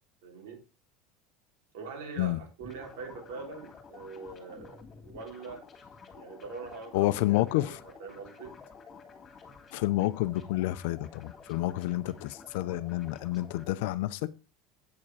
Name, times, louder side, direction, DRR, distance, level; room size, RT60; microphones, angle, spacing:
voice 1, 0.2-0.6 1.7-5.7 6.1-7.2 7.5-8.5, right 4 dB, 85° right, 3.8 m, -43 dB
sound 1, 2.6-13.7, left 5 dB, 25° left, 2.3 m, -51 dB
voice 2, 6.9-7.8 9.7-14.3, left 16 dB, 75° left, 0.7 m, -29 dB
8.4 x 7.4 x 4.8 m
supercardioid pair, 150°, 0 cm